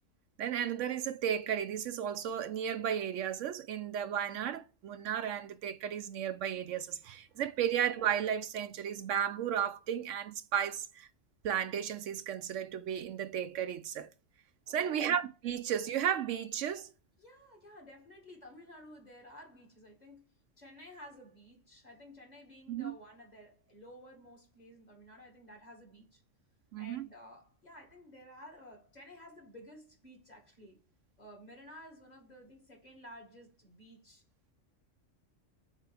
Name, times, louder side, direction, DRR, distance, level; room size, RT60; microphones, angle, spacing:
voice 1, 0.4-11.1 11.4-14.1 14.7-16.9 22.7-22.9 26.7-27.0, right 9 dB, 75° right, 0.9 m, -34 dB
voice 2, 14.7-15.1 17.2-20.2 20.6-26.2 26.8-30.8 31.2-34.2, left 1 dB, 35° left, 2.0 m, -53 dB
7.5 x 3.7 x 3.4 m
omnidirectional pair, 1.3 m